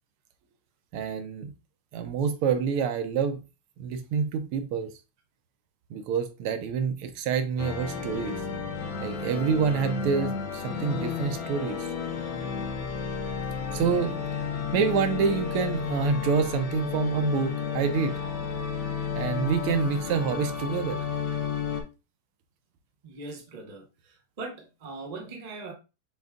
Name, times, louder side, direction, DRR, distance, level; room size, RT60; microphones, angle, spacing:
voice 1, 0.9-1.5 1.9-3.4 3.8-4.9 5.9-8.4 9.0-11.9 13.7-14.2 14.7-18.1 19.1-21.1, right 6 dB, 90° right, 1.6 m, -27 dB
sound 1, 7.6-21.8, left 6 dB, 70° left, 1.6 m, -32 dB
voice 2, 23.0-23.8 24.4-25.7, right 3 dB, 45° right, 0.5 m, -39 dB
6.5 x 2.2 x 3.7 m
omnidirectional pair, 2.4 m